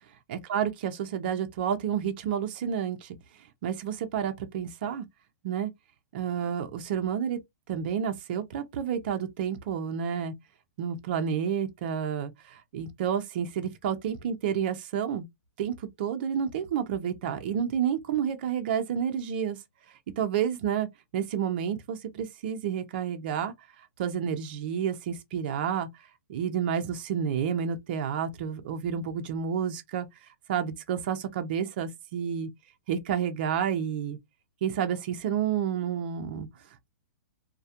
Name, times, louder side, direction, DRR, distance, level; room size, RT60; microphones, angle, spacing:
voice 1, 0.3-3.2 3.6-5.0 5.4-5.7 6.1-7.4 7.7-10.3 10.8-15.3 15.6-19.6 20.2-20.9 21.1-23.5 24.0-25.9 26.3-30.1 30.5-32.5 32.9-34.2 34.6-36.5, right 8 dB, 35° right, 0.4 m, -30 dB
2.3 x 2.1 x 2.7 m
hypercardioid pair, 170°, 9 cm